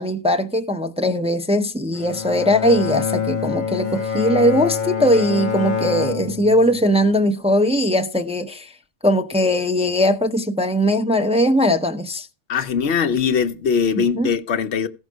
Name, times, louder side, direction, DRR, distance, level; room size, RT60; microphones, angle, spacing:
voice 1, 0.0-8.7 9.0-12.3 14.0-14.3, equal, 5° right, 0.6 m, -20 dB
Bowed string instrument, 1.9-7.2, left 6 dB, 45° left, 0.9 m, -26 dB
voice 2, 12.5-14.9, left 6 dB, 75° left, 1.0 m, -21 dB
15.5 x 5.7 x 6.1 m
omnidirectional pair, 1.1 m